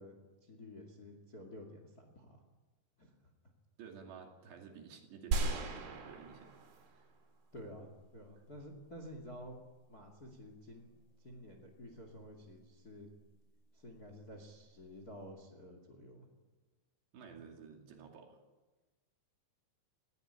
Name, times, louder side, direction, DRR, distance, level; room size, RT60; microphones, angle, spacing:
voice 1, 0.0-2.4 3.0-3.1 7.5-9.6 9.9-10.9 11.2-13.1 13.7-16.3, equal, 30° left, 4 dB, 1.9 m, -51 dB
voice 2, 3.8-6.5 6.9-7.1 17.1-18.4, right 6 dB, 65° right, 2 dB, 4.5 m, -53 dB
sound 1, 5.3-7.2 7.6-7.7, right 3 dB, 85° right, 5.4 m, -37 dB
20.0 x 16.5 x 8.8 m, 1.2 s
omnidirectional pair, 5.3 m